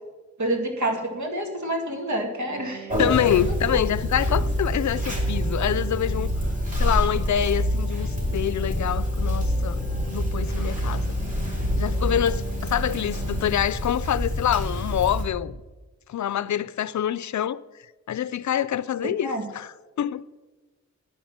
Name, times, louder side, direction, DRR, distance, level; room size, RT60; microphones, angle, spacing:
voice 1, 0.4-2.9 3.5-3.6 19.0-19.5, right 1 dB, 75° right, 2.2 m, -28 dB
sound 1, 2.5-13.5, right 6 dB, 55° right, 2.0 m, -42 dB
Conversation, 2.9-15.2, equal, 25° right, 3.3 m, -26 dB
voice 2, 3.0-6.3 6.8-11.2 11.8-15.6 16.1-17.6 18.1-19.7 20.0-20.3, left 10 dB, 75° left, 0.5 m, -26 dB
10.5 x 9.3 x 7.3 m
wide cardioid pair, 105°, 29 cm